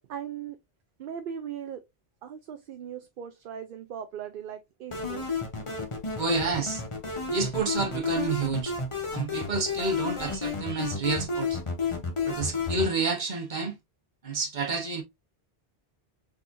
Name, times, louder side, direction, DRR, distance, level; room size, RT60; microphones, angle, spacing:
voice 1, 0.1-0.6 1.0-1.8 2.2-5.4, right 8 dB, 65° right, 0.7 m, -39 dB
sound 1, 4.9-12.9, left 4 dB, 30° left, 1.0 m, -31 dB
voice 2, 6.2-6.8 7.3-8.7 9.1-11.6 12.3-13.7 14.2-15.0, right 4 dB, 50° right, 1.2 m, -29 dB
4.2 x 3.5 x 2.6 m
omnidirectional pair, 1.0 m